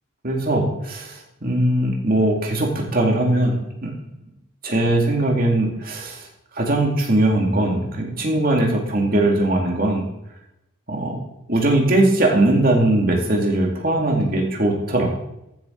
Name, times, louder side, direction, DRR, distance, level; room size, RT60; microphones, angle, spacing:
voice 1, 0.2-3.9 4.6-6.3 6.6-10.0 10.9-11.2 11.5-15.1, right 1 dB, 40° right, 0 dB, 2.3 m, -20 dB
14.5 x 7.3 x 3.9 m, 0.85 s
head